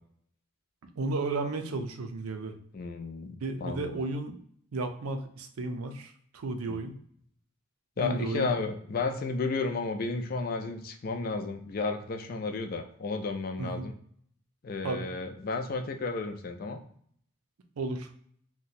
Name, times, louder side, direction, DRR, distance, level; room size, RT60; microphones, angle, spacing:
voice 1, 1.0-2.6 3.4-4.4 4.7-7.0 8.0-8.5 13.6-13.9 14.8-15.1 17.8-18.1, right 3 dB, 85° right, 6 dB, 0.5 m, -33 dB
voice 2, 2.7-4.0 6.7-6.9 8.0-13.9 14.6-16.8, left 3 dB, 40° left, 5 dB, 0.4 m, -33 dB
2.7 x 2.2 x 4.0 m, 0.62 s
head